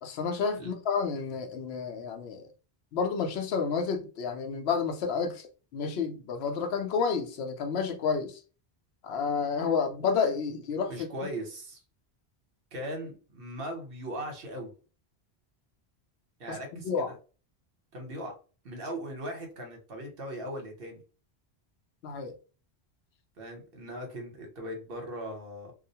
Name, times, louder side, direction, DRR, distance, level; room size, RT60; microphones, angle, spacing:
voice 1, 0.0-2.5 2.9-8.4 9.0-11.3 16.5-17.1 22.0-22.3, left 5 dB, 80° left, 0.8 m, -30 dB
voice 2, 10.9-11.8 12.7-14.7 16.4-17.1 17.9-18.3 18.6-21.0 23.4-25.7, equal, 65° right, 1.1 m, -39 dB
2.3 x 2.1 x 2.7 m
omnidirectional pair, 1.1 m